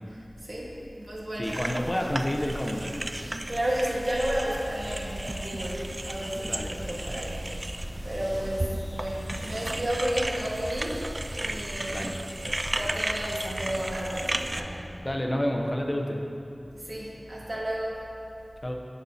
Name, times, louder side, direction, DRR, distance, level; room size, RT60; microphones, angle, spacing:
voice 1, 0.1-1.6 3.5-7.4 7.7-11.1 11.4-12.2 12.7-14.8 16.7-18.0, equal, 60° right, -5 dB, 1.6 m, -32 dB
voice 2, 1.4-3.0 6.5-6.7 11.9-12.2 15.0-16.2 18.6-18.8, left 1 dB, 35° left, 1 dB, 0.7 m, -29 dB
sound 1, 1.4-14.6, right 1 dB, 45° right, 0.3 m, -34 dB
sound 2, 3.5-10.9, equal, 70° left, 1.2 m, -42 dB
sound 3, 6.5-15.1, equal, 10° right, 1.1 m, -44 dB
10.5 x 7.0 x 2.8 m, 2.6 s
wide cardioid pair, 45°, 0 cm